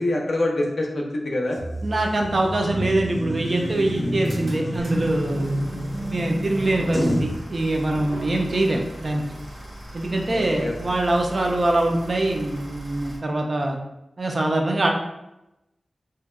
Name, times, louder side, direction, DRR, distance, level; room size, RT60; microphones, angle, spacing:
voice 1, 0.0-1.6 10.3-10.8, left 1 dB, 65° left, 0 dB, 0.4 m, -25 dB
sound 1, 1.6-7.4, equal, 10° left, 0.5 m, -28 dB
voice 2, 1.8-5.7 6.1-9.2 9.9-13.8 14.2-14.9, right 2 dB, 45° right, 2 dB, 0.3 m, -23 dB
sound 2, 3.4-13.2, equal, 90° right, 0.8 m, -39 dB
2.7 x 2.1 x 2.2 m, 0.92 s
wide cardioid pair, 110°, 0 cm